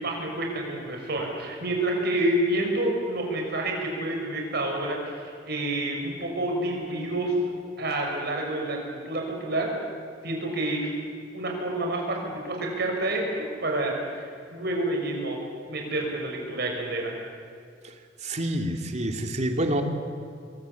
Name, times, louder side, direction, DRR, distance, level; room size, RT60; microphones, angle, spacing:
voice 1, 0.0-7.4 7.8-9.7 10.2-10.9 11.3-15.4 15.7-17.1, right 1 dB, 60° right, 1 dB, 6.5 m, -28 dB
voice 2, 18.2-19.8, right 1 dB, 40° right, 5 dB, 2.6 m, -27 dB
27.5 x 22.0 x 8.4 m, 2.3 s
head